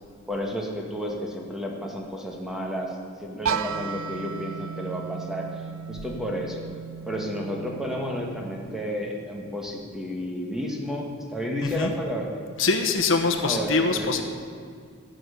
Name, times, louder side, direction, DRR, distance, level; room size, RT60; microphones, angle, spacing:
voice 1, 0.3-6.6 7.1-12.4 13.2-14.1, equal, ahead, 0 dB, 1.5 m, -32 dB
sound 1, 3.5-9.3, right 6 dB, 75° right, 0.5 m, -35 dB
voice 2, 12.6-14.2, left 4 dB, 60° left, 4 dB, 1.1 m, -23 dB
15.0 x 6.3 x 8.1 m, 2.2 s
head